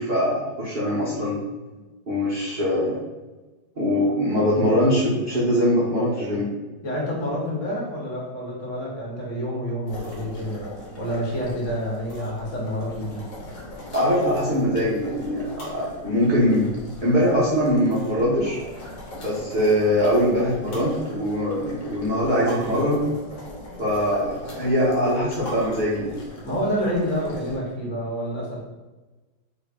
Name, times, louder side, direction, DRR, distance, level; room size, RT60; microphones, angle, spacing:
voice 1, 0.0-1.4 2.1-3.0 3.8-6.5 13.9-16.6 17.0-18.6 19.2-23.0 23.8-26.2, equal, 60° right, -9 dB, 0.4 m, -22 dB
voice 2, 6.8-10.7 11.0-13.2 26.4-28.6, equal, 45° left, -4 dB, 1.1 m, -28 dB
sound 1, 9.9-27.6, left 1 dB, 65° left, 1.4 m, -40 dB
3.1 x 2.7 x 3.4 m, 1.2 s
omnidirectional pair, 2.0 m